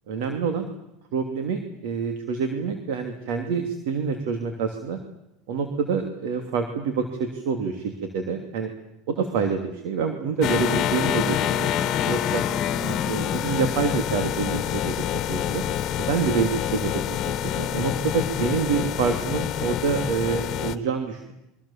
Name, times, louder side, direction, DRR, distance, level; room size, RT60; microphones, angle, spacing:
voice 1, 0.1-0.7 1.1-5.0 5.5-8.7 9.1-12.4 12.8-15.0 15.3-15.6 16.0-16.9 17.2-21.3, right 5 dB, 75° right, 5 dB, 2.8 m, -27 dB
sound 1, 10.4-20.8, left 10 dB, 45° left, 1.5 m, -26 dB
28.0 x 24.0 x 7.4 m, 0.87 s
supercardioid pair, 125°, 0 cm